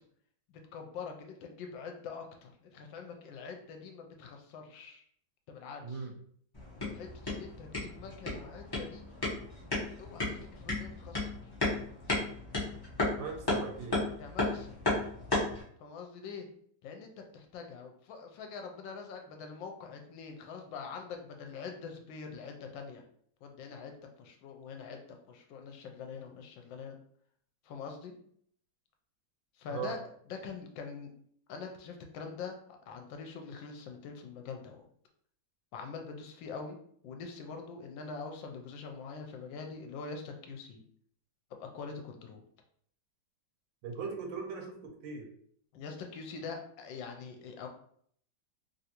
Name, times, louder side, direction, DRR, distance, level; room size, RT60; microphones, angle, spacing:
voice 1, 0.5-5.0 5.5-6.1 6.9-9.1 10.0-11.5 14.2-14.8 15.8-16.5 16.8-23.0 23.4-27.0 27.6-28.1 29.6-30.0 30.3-31.1 31.5-34.8 35.7-36.8 37.0-40.8 41.6-42.4 45.7-47.7, left 5 dB, 75° left, 3 dB, 1.2 m, -44 dB
voice 2, 5.8-6.1 13.2-14.0 29.7-29.9 43.8-45.3, right 5 dB, 75° right, 2 dB, 1.2 m, -39 dB
sound 1, 6.5-15.6, left 2 dB, 40° left, 0.3 m, -34 dB
3.3 x 2.6 x 2.8 m, 0.63 s
omnidirectional pair, 2.2 m